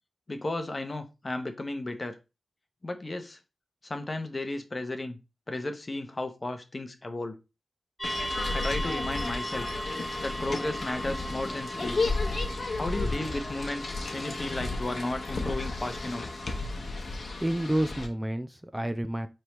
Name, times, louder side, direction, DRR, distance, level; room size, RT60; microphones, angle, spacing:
voice 1, 0.3-2.2 2.8-3.4 3.8-5.2 5.5-7.4 8.5-12.0 12.8-16.2, left 2 dB, 40° left, 7 dB, 0.8 m, -34 dB
sound 1, 8.0-18.1, left 3 dB, 60° left, 1.0 m, -33 dB
sound 2, 8.0-16.7, equal, 5° left, 1.2 m, -38 dB
voice 2, 17.0-19.3, right 1 dB, 10° right, 9 dB, 0.4 m, -30 dB
4.4 x 3.3 x 3.0 m, 0.27 s
cardioid pair, 55°, 0 cm